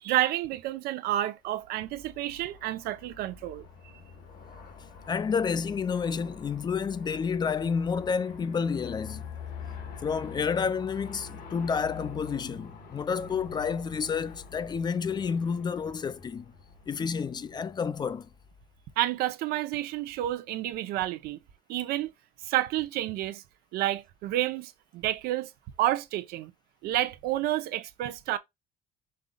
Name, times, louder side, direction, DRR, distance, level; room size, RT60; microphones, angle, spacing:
voice 1, 0.0-3.7 19.0-21.4 21.7-22.1 22.4-23.4 23.7-25.5 25.8-26.5 26.8-28.4, right 14 dB, 85° right, 0.7 m, -30 dB
Aircraft, 1.6-18.8, left 6 dB, 75° left, 1.5 m, -46 dB
voice 2, 5.1-9.3 10.0-16.5 16.9-18.3, left 6 dB, 30° left, 0.4 m, -30 dB
5.4 x 3.7 x 2.2 m
cardioid pair, 125°, 16 cm